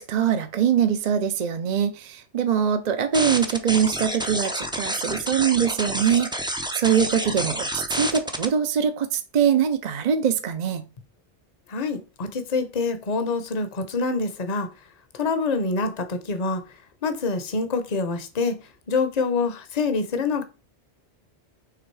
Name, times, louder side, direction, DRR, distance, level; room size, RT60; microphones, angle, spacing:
voice 1, 0.0-6.3 6.7-10.8, right 8 dB, 45° right, 0.7 m, -23 dB
sound 1, 3.1-8.4, right 1 dB, 5° right, 0.5 m, -29 dB
voice 2, 11.7-14.7 15.1-16.6 17.0-20.4, left 4 dB, 40° left, 0.9 m, -26 dB
6.0 x 3.6 x 4.7 m
omnidirectional pair, 1.2 m